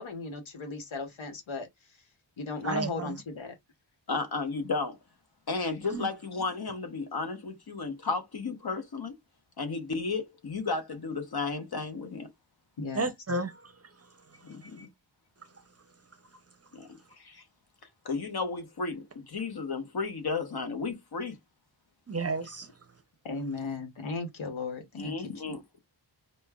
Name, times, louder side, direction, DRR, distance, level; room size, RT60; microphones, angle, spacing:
voice 1, 0.0-1.7 2.4-3.5 12.8-13.1 23.2-25.6, left 3 dB, 80° left, 1.1 m, -36 dB
voice 2, 2.6-3.2 5.9-6.1 12.9-13.7 14.8-14.9 22.1-22.7, right 3 dB, 35° right, 0.6 m, -32 dB
voice 3, 4.1-5.0 5.5-9.2 9.6-12.3 14.4-14.9 16.7-17.4 18.0-21.4 25.0-25.8, left 4 dB, 55° left, 1.0 m, -33 dB
5.1 x 2.1 x 2.3 m
wide cardioid pair, 90°, 46 cm